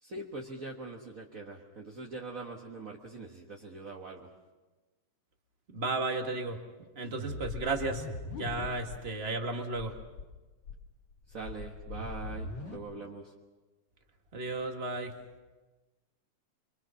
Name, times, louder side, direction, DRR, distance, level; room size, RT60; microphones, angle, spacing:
voice 1, 0.0-4.3 11.3-13.3, right 3 dB, 40° right, -1 dB, 1.3 m, -43 dB
voice 2, 5.7-8.1 8.3-9.9 14.3-15.1, right 3 dB, 25° right, 3 dB, 1.7 m, -34 dB
sound 1, 7.1-9.0 9.3-9.4 9.7-10.2 10.6-12.8, left 3 dB, 45° left, 3.6 m, -40 dB
26.0 x 25.0 x 5.8 m, 1.2 s
omnidirectional pair, 3.4 m